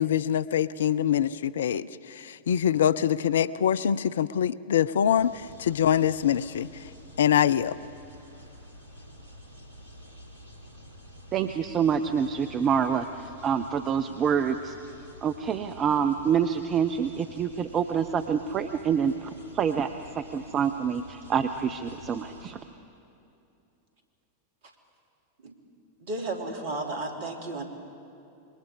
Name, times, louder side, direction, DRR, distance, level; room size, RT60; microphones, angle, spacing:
voice 1, 0.0-6.7 7.2-7.8, left 9 dB, 65° left, 18 dB, 0.4 m, -24 dB
sound 1, 5.1-22.5, equal, 75° right, 2.8 m, -49 dB
voice 2, 11.3-14.8 15.2-19.3 19.5-19.9 20.1-22.6, right 7 dB, 30° right, 9 dB, 0.7 m, -26 dB
voice 3, 26.0-27.6, right 2 dB, 50° right, 3 dB, 2.9 m, -33 dB
26.5 x 22.0 x 5.1 m, 2.7 s
figure-of-eight pair, 90°, 0 cm